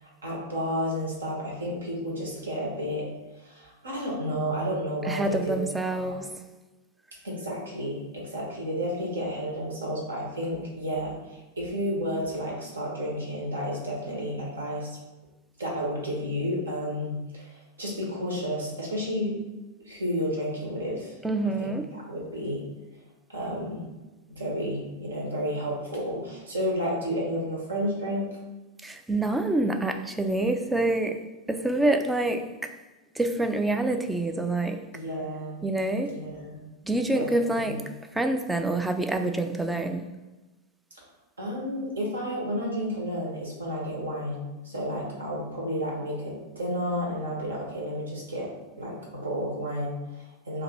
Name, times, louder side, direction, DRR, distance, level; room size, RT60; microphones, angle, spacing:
voice 1, 0.0-3.1 3.4-5.7 6.0-6.2 7.2-14.9 15.6-19.3 19.8-21.2 21.6-22.6 23.3-23.8 24.3-28.3 34.9-35.6 36.0-36.6 37.1-37.2 37.5-37.7 41.4-48.5 48.8-50.6, equal, 70° right, -3 dB, 1.2 m, -31 dB
voice 2, 5.0-6.3 21.2-21.9 28.8-31.2 31.5-32.7 33.2-34.8 35.6-36.1 36.8-37.8 38.1-40.0, right 2 dB, 10° right, 6 dB, 0.3 m, -26 dB
2.8 x 2.6 x 4.3 m, 1.1 s
figure-of-eight pair, 90°, 0 cm